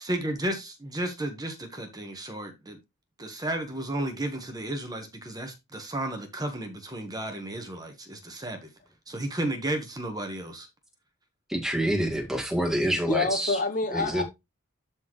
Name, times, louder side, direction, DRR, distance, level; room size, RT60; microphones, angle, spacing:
voice 1, 0.0-2.8 3.2-8.7 9.1-10.7, right 1 dB, 15° right, 1.3 m, -33 dB
voice 2, 11.5-13.6 13.9-14.2, right 1 dB, ahead, 1.9 m, -27 dB
voice 3, 13.1-14.2, left 3 dB, 35° left, 0.9 m, -27 dB
12.5 x 4.2 x 3.1 m
head